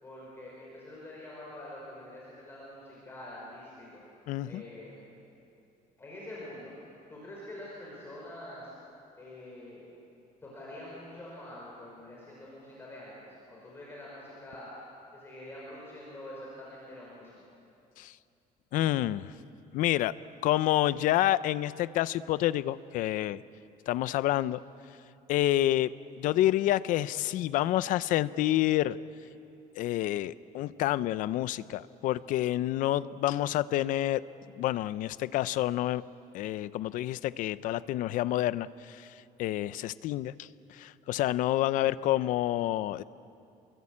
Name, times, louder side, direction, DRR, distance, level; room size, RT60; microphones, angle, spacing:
voice 1, 0.0-4.0 4.5-5.0 6.0-6.7 7.1-8.7 9.2-9.9 10.4-14.7 15.1-17.3, left 1 dB, 15° left, -5 dB, 5.3 m, -45 dB
voice 2, 4.3-4.6 18.0-18.1 18.7-19.3 19.7-20.1 20.4-23.4 23.9-24.6 25.3-25.9 26.2-29.0 29.8-34.2 34.6-36.0 36.3-39.1 39.4-43.0, left 14 dB, 60° left, 16 dB, 0.6 m, -28 dB
28.0 x 22.5 x 8.7 m, 2.6 s
cardioid pair, 180°, 15 cm